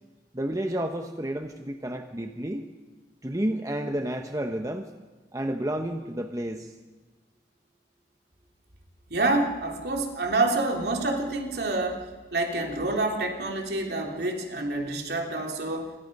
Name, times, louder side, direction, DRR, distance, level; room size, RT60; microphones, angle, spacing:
voice 1, 0.3-2.7 3.2-4.9 5.3-6.7, right 1 dB, 20° right, 5 dB, 1.1 m, -30 dB
voice 2, 9.1-15.9, right 2 dB, 60° right, 2 dB, 3.3 m, -27 dB
28.0 x 24.5 x 5.5 m, 1.2 s
head